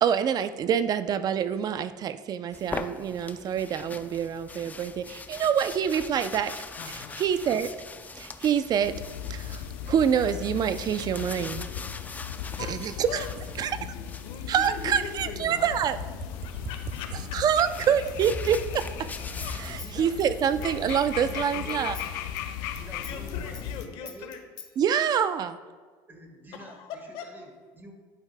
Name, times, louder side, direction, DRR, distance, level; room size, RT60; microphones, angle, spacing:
voice 1, 0.0-6.5 7.2-7.7 8.2-9.0 9.3-11.7 12.7-13.2 13.6-13.7 14.5-16.0 17.3-19.1 20.0-22.0 24.8-25.5, right 8 dB, 40° right, 12 dB, 0.5 m, -26 dB
sound 1, 2.5-15.3 16.3-19.9, left 3 dB, 15° left, 0.5 m, -41 dB
voice 2, 6.7-7.2 12.6-12.8 13.1-15.7 16.3-17.4 19.4-19.6 20.0-20.2 23.0-24.4 26.5-27.3, left 6 dB, 60° left, 5 dB, 1.3 m, -41 dB
sound 2, 8.8-23.9, left 9 dB, 80° left, 0.6 m, -37 dB
Human voice / Scissors, 17.7-21.4 21.7-24.7, left 5 dB, 40° left, 1.0 m, -47 dB
voice 3, 19.8-20.9 21.2-22.2 22.7-24.4 26.1-27.9, right 1 dB, 20° right, 3 dB, 1.7 m, -47 dB
12.0 x 8.0 x 2.2 m, 1.5 s
supercardioid pair, 105°, 10 cm